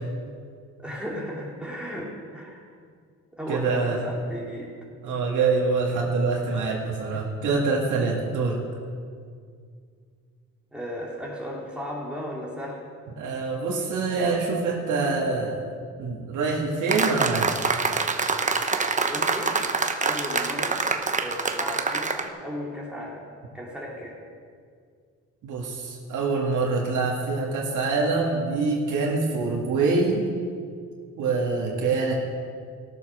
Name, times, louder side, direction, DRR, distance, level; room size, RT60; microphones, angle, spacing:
voice 1, 0.8-2.6 3.3-4.8 7.1-7.3 10.7-12.8 19.0-19.6 20.0-23.3 23.5-24.2, equal, 5° right, -4 dB, 2.6 m, -35 dB
voice 2, 3.5-4.0 5.0-8.6 13.2-15.7 16.0-17.5 25.4-30.2 31.2-32.1, right 4 dB, 80° right, -2 dB, 2.1 m, -25 dB
sound 1, 16.9-22.3, right 4 dB, 25° right, 0.9 m, -25 dB
17.5 x 7.0 x 6.3 m, 2.1 s
cardioid pair, 90°, 30 cm